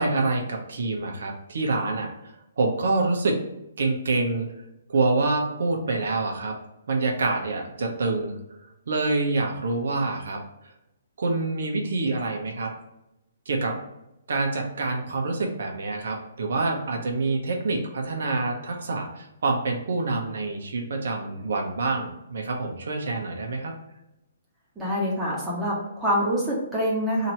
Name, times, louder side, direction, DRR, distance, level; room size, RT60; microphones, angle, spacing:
voice 1, 0.0-2.1 2.6-3.4 3.8-4.5 4.9-6.5 6.9-8.4 8.9-10.4 11.2-12.7 13.5-13.8 14.3-23.7, right 3 dB, 70° right, 1 dB, 1.0 m, -26 dB
voice 2, 24.8-27.3, equal, 10° right, -5 dB, 1.2 m, -25 dB
2.9 x 2.8 x 4.4 m, 0.88 s
hypercardioid pair, 150°, 0 cm